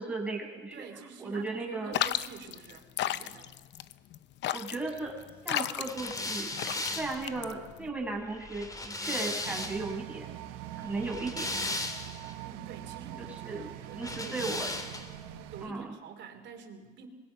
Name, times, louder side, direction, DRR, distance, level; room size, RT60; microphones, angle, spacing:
voice 1, 0.0-0.8 1.2-2.0 4.5-5.1 5.4-10.3 10.8-11.5 13.5-14.7 15.6-15.9, right 3 dB, 5° right, -2 dB, 6.8 m, -36 dB
voice 2, 0.7-3.5 12.4-14.5 15.3-17.1, right 6 dB, 60° right, 5 dB, 3.7 m, -47 dB
sound 1, 1.9-7.9, left 12 dB, 60° left, 0.8 m, -34 dB
sound 2, 5.9-10.0 10.9-12.3 14.0-15.2, left 2 dB, 15° left, 2.5 m, -37 dB
sound 3, 9.4-15.7, right 12 dB, 90° right, 1.2 m, -43 dB
24.5 x 20.5 x 5.7 m, 1.3 s
supercardioid pair, 95°, 21 cm